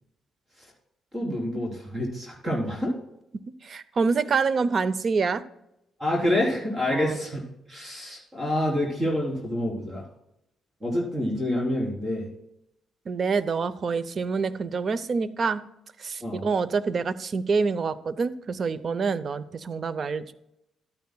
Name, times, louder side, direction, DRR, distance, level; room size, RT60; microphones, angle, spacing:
voice 1, 1.1-2.9 6.0-7.4 7.7-10.1 10.8-12.3 16.2-16.5, left 1 dB, 25° right, -2 dB, 3.6 m, -27 dB
voice 2, 3.6-5.4 6.9-7.2 13.1-15.6 16.0-20.3, right 4 dB, 45° right, 16 dB, 0.6 m, -26 dB
12.5 x 9.4 x 2.2 m, 0.84 s
cardioid pair, 90°, 0 cm